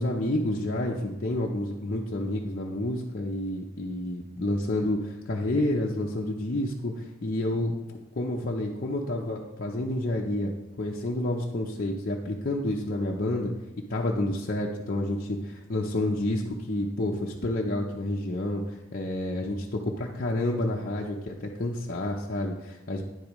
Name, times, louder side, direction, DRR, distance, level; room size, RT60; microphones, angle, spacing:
voice 1, 0.0-10.5 10.8-13.5 13.9-23.0, left 1 dB, 40° left, -2 dB, 0.7 m, -29 dB
9.7 x 8.4 x 3.1 m, 0.97 s
head